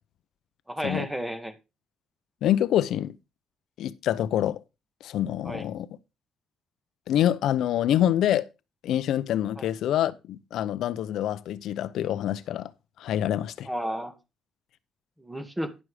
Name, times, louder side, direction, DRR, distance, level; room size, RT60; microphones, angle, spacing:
voice 1, 0.7-1.5 5.5-5.7 9.6-9.7 13.7-14.1 15.2-15.7, equal, 5° right, 1.9 m, -32 dB
voice 2, 2.4-3.2 3.8-4.6 5.0-5.9 7.1-8.5 8.8-12.7 13.0-13.7, left 11 dB, 80° left, 0.7 m, -26 dB
11.0 x 6.2 x 4.9 m
cardioid pair, 90°, 0 cm